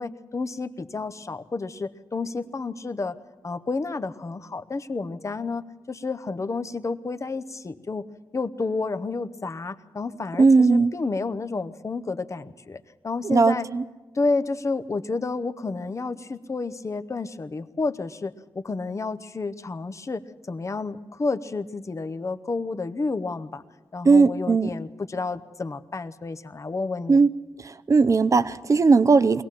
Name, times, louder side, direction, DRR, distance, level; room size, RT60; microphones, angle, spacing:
voice 1, 0.0-3.2 3.4-8.0 8.3-13.7 14.1-20.2 20.5-23.6 23.9-27.2, left 3 dB, 35° left, 12 dB, 0.9 m, -30 dB
voice 2, 10.4-10.9 13.2-13.8 24.0-24.7 27.1-27.3 27.9-29.4, right 4 dB, 40° right, 13 dB, 0.6 m, -18 dB
23.0 x 18.0 x 7.6 m, 1.2 s
wide cardioid pair, 100°, 8 cm